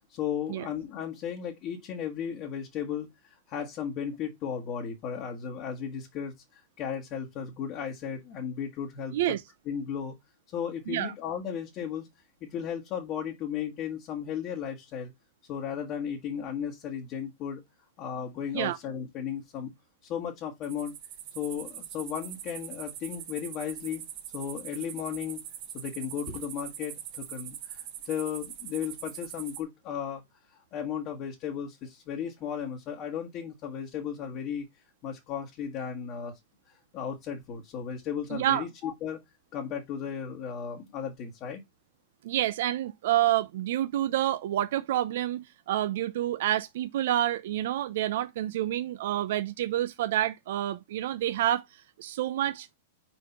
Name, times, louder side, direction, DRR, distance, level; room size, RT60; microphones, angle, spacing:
voice 1, 0.1-9.2 9.7-10.2 10.5-12.1 12.4-15.1 15.5-17.6 18.0-19.7 20.0-20.9 21.3-24.1 24.3-25.4 25.7-30.2 30.5-34.7 35.0-36.4 36.7-39.2 39.5-41.6, left 8 dB, 35° left, 1.4 m, -35 dB
sound 1, 20.6-29.6, right 10 dB, 45° right, 1.5 m, -42 dB
voice 2, 38.3-38.7 42.2-52.8, right 13 dB, 60° right, 0.6 m, -28 dB
4.6 x 4.5 x 5.3 m
supercardioid pair, 150°, 0 cm